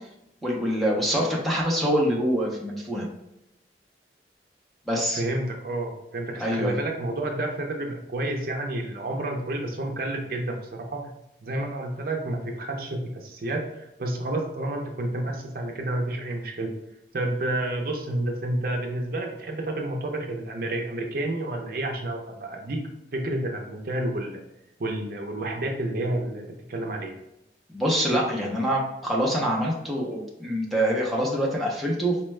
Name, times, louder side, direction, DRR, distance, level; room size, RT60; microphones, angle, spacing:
voice 1, 0.4-3.1 4.9-5.2 6.4-6.8 27.7-32.2, equal, ahead, -3 dB, 0.5 m, -25 dB
voice 2, 5.1-11.1 11.4-16.7 17.1-22.8 23.1-24.4 24.8-27.1, right 1 dB, 55° right, 2 dB, 0.5 m, -30 dB
4.3 x 2.2 x 3.1 m, 0.84 s
head